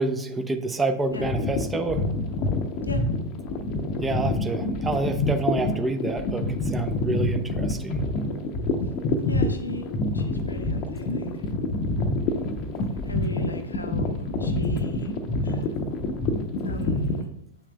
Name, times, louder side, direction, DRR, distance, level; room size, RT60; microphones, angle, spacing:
voice 1, 0.0-2.0 4.0-8.0, right 2 dB, 15° right, 7 dB, 0.6 m, -28 dB
sound 1, 1.1-17.2, left 2 dB, 40° left, 0.7 m, -27 dB
voice 2, 9.3-11.5 13.0-15.1 15.4-15.7 16.6-17.2, left 1 dB, 80° left, 7 dB, 0.7 m, -38 dB
8.0 x 5.7 x 2.3 m, 0.74 s
figure-of-eight pair, 90°, 0 cm